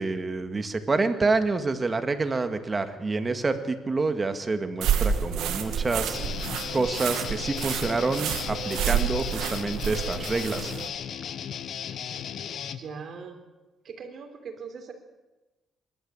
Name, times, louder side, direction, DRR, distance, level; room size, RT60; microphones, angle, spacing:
voice 1, 0.0-6.2 6.7-10.7, right 3 dB, 30° right, 8 dB, 2.0 m, -27 dB
sound 1, 4.8-10.9, right 8 dB, 85° right, 2.4 m, -29 dB
Guitar, 6.1-12.8, left 8 dB, 65° left, 1.3 m, -35 dB
voice 2, 12.8-13.4 13.8-14.9, right 5 dB, 60° right, 6 dB, 4.0 m, -40 dB
26.5 x 13.0 x 8.7 m, 1.1 s
cardioid pair, 90°, 0 cm